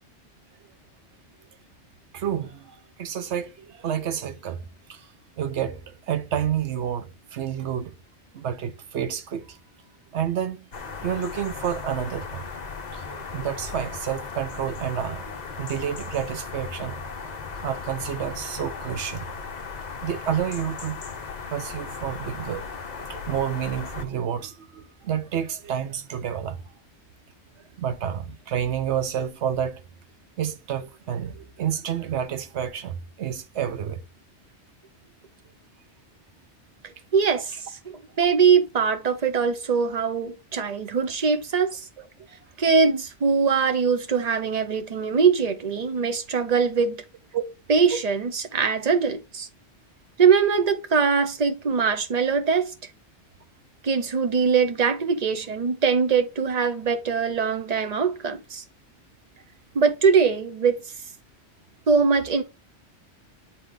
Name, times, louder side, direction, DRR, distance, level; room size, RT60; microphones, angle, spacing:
voice 1, 2.1-4.6 4.9-5.1 5.4-7.9 8.3-9.6 10.1-10.6 10.9-12.5 12.9-17.0 17.6-19.2 20.0-21.0 21.5-26.6 27.8-29.8 30.4-34.0 47.3-47.4, right 9 dB, 75° right, 1.0 m, -29 dB
sound 1, 10.7-24.1, left 5 dB, 45° left, 0.8 m, -37 dB
voice 2, 37.1-41.9 42.6-47.0 47.7-49.5 50.2-52.7 53.8-58.6 59.7-60.9 61.9-62.4, right 5 dB, 40° right, 0.8 m, -22 dB
8.5 x 3.4 x 3.7 m
omnidirectional pair, 1.2 m